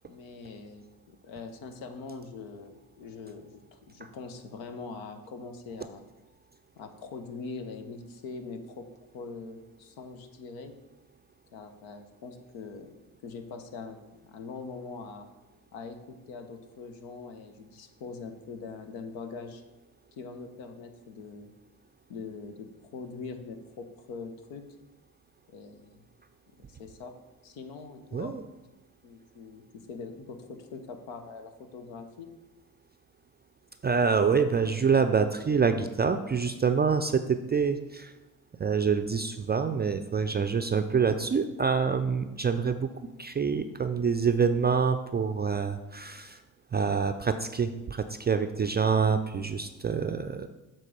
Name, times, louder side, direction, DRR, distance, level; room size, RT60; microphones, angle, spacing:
voice 1, 0.0-6.1 6.8-10.7 11.5-12.9 13.2-14.0 14.2-15.3 15.7-19.6 20.2-21.5 22.1-24.6 25.5-26.0 26.6-27.1 27.4-28.4 29.0-32.3, left 4 dB, 80° left, 7 dB, 1.0 m, -42 dB
voice 2, 28.1-28.4 33.8-38.1 38.6-42.9 43.2-46.4 46.7-50.5, right 5 dB, 25° right, 8 dB, 0.4 m, -26 dB
7.4 x 3.8 x 6.5 m, 1.1 s
hypercardioid pair, 55°, 46 cm